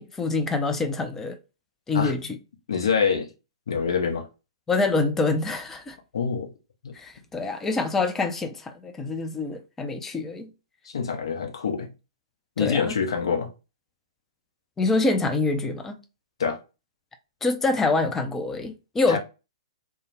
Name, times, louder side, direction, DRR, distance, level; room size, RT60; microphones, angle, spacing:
voice 1, 0.0-1.4 1.9-2.4 4.7-6.0 6.9-10.5 12.6-13.0 14.8-16.0 17.4-19.2, left 3 dB, 10° left, 0.4 m, -26 dB
voice 2, 2.7-3.3 3.7-4.3 6.1-6.5 6.8-6.9 10.8-11.9 12.6-13.5 16.4-16.6 19.1-19.2, left 6 dB, 65° left, 0.7 m, -25 dB
2.2 x 2.0 x 3.1 m
figure-of-eight pair, 115°, 3 cm